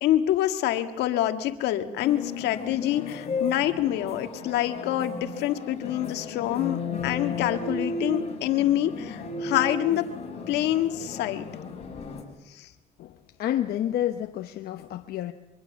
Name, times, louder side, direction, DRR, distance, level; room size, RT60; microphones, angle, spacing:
voice 1, 0.0-10.1 10.5-11.5 12.5-12.7, left 13 dB, 85° left, 8 dB, 1.7 m, -26 dB
sound 1, 2.0-12.2, left 3 dB, 40° left, 5.8 m, -34 dB
voice 2, 13.0-15.3, left 11 dB, 70° left, 6 dB, 1.0 m, -29 dB
24.5 x 23.5 x 7.2 m, 0.98 s
cardioid pair, 110°, 17 cm